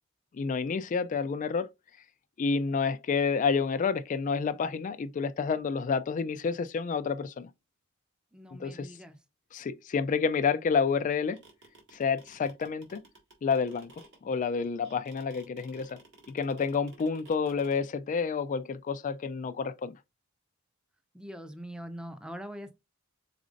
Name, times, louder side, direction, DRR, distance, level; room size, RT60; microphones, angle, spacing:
voice 1, 0.3-1.7 2.4-7.5 8.6-8.9 9.5-11.4 11.9-13.0 13.4-13.9 14.2-16.0 16.3-19.9, left 5 dB, 35° left, 0.3 m, -29 dB
voice 2, 8.3-9.2 21.1-22.7, equal, 5° right, 0.6 m, -43 dB
sound 1, 11.1-17.8, right 2 dB, 60° right, 1.9 m, -54 dB
5.0 x 4.1 x 2.5 m
head